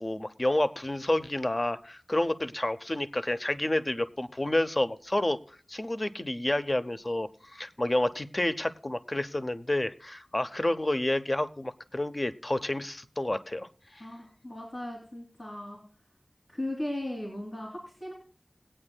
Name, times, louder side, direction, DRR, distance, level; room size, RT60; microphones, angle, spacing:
voice 1, 0.0-13.7 14.0-14.1, left 1 dB, 40° left, 11 dB, 0.7 m, -29 dB
voice 2, 14.0-15.8 16.5-18.1, left 1 dB, 60° left, -4 dB, 3.0 m, -37 dB
20.5 x 8.8 x 2.2 m, 0.44 s
wide cardioid pair, 45°, 0 cm